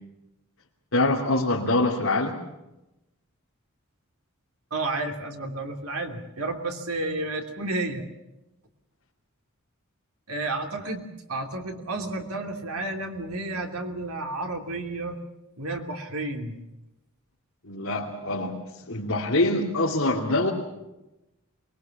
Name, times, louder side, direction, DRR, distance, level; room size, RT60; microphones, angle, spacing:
voice 1, 0.9-2.4 17.6-18.5 18.9-20.5, left 2 dB, 65° left, -4 dB, 3.1 m, -24 dB
voice 2, 4.7-8.1 10.3-15.2 15.6-16.6, right 2 dB, 85° right, 4 dB, 3.0 m, -31 dB
23.5 x 21.5 x 7.2 m, 0.95 s
head